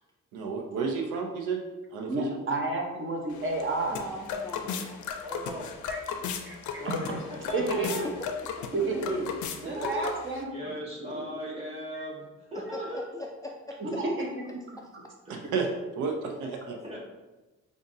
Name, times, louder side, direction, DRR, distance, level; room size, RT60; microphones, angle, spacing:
voice 1, 0.3-1.6 1.9-2.3 15.5-15.7 16.0-16.8, right 5 dB, 85° right, 3 dB, 0.6 m, -31 dB
voice 2, 2.1-4.0 5.9-6.0 6.5-6.9 7.5-8.1 8.7-9.3 9.6-10.7 11.1-11.2 13.8-14.3, right 2 dB, 40° right, 0 dB, 0.9 m, -30 dB
sound 1, 3.3-10.4, left 6 dB, 75° left, 0.5 m, -36 dB
voice 3, 3.9-5.1 7.9-8.1 8.6-8.7 12.7-13.8, left 2 dB, 10° left, -1 dB, 0.3 m, -41 dB
voice 4, 5.2-5.7 6.8-8.0 9.6-10.1 10.5-13.0 15.3-15.4 16.8-17.0, equal, 20° right, -5 dB, 1.5 m, -38 dB
5.0 x 2.5 x 2.6 m, 1.1 s
cardioid pair, 90°, 30 cm